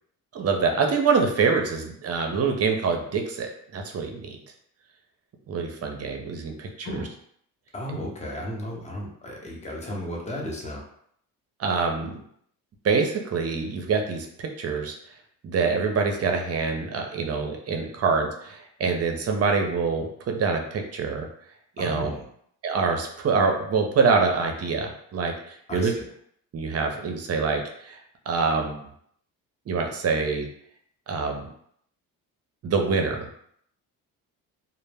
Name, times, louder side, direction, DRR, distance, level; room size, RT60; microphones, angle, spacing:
voice 1, 0.3-4.4 5.5-7.1 11.6-12.2 12.8-14.9 15.4-21.3 21.8-22.1 22.6-25.9 26.5-28.0 28.3-28.8 29.7-30.5 31.1-31.5 32.6-33.3, right 5 dB, 40° right, 3 dB, 0.6 m, -25 dB
voice 2, 7.7-10.8 21.8-22.2 25.7-26.0, left 1 dB, 15° left, -2 dB, 0.7 m, -34 dB
2.0 x 2.0 x 3.3 m, 0.67 s
supercardioid pair, 80°, 39 cm